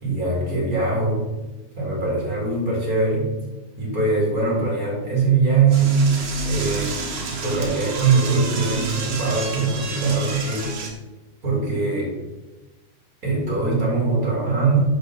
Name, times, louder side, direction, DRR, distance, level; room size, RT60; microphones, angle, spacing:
voice 1, 0.0-1.2 1.8-3.3 3.8-10.8 11.4-12.1 13.2-14.8, right 4 dB, 30° right, -4 dB, 2.0 m, -22 dB
Door / Toilet flush, 5.7-10.9, right 4 dB, 60° right, 1.4 m, -30 dB
6.3 x 5.3 x 5.5 m, 1.1 s
omnidirectional pair, 4.1 m